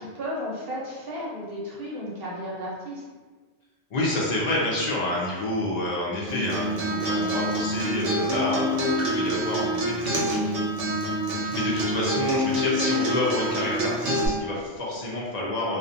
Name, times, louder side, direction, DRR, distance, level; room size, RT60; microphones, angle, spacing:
voice 1, 0.0-3.0, equal, 60° right, -5 dB, 0.8 m, -34 dB
voice 2, 3.9-10.4 11.4-15.8, left 1 dB, 70° left, -4 dB, 0.4 m, -29 dB
Acoustic guitar, 6.3-14.3, equal, 90° right, 0.9 m, -26 dB
2.3 x 2.1 x 2.5 m, 1.3 s
omnidirectional pair, 1.2 m